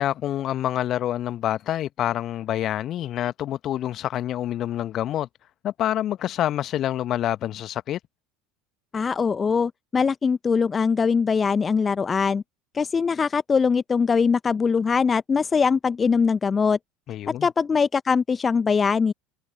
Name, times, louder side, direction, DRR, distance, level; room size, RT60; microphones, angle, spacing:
voice 1, 0.0-5.3 5.6-8.0 17.1-17.5, left 12 dB, 40° left, 1.3 m, -27 dB
voice 2, 8.9-12.4 12.7-16.8 17.4-19.1, left 5 dB, 25° left, 0.7 m, -22 dB
figure-of-eight pair, 70°, 0 cm